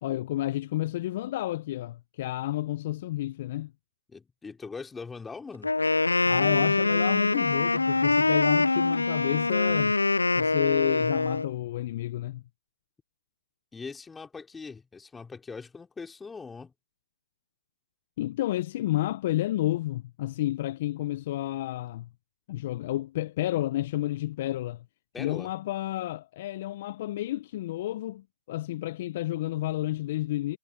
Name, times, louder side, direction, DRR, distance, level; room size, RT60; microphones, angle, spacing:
voice 1, 0.0-3.7 6.3-9.9 10.3-12.4 18.2-22.1 22.5-24.8 25.2-30.6, left 15 dB, 35° left, 0.8 m, -31 dB
voice 2, 4.1-5.7 13.7-16.7 25.1-25.5, left 4 dB, 5° left, 3.7 m, -41 dB
Wind instrument woodwind instrument, 5.6-11.5, left 3 dB, 90° left, 0.3 m, -24 dB
hypercardioid pair, 145°, 0 cm